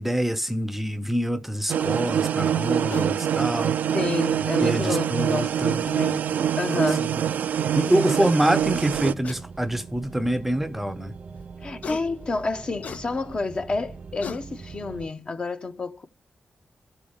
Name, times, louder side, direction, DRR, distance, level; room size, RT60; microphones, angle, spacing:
voice 1, 0.0-3.8 4.6-5.8 7.0-7.2 7.7-11.1, right 1 dB, 5° right, 0.6 m, -25 dB
sound 1, 1.7-9.1, right 9 dB, 80° right, 0.5 m, -25 dB
sound 2, 2.9-3.2 4.6-4.7 6.3-6.4 6.7-6.9 7.4-7.5 7.8-8.0 9.2-9.4 10.2-10.3 11.8-12.0 12.8-13.0 13.8-13.9 14.2-14.4, left 6 dB, 55° left, 0.5 m, -36 dB
voice 2, 3.9-6.2 6.6-7.1 8.2-8.3 11.6-16.1, left 3 dB, 35° left, 0.8 m, -29 dB
sound 3, 8.6-15.1, right 5 dB, 45° right, 0.7 m, -42 dB
13.0 x 5.0 x 7.1 m
wide cardioid pair, 120°, 3 cm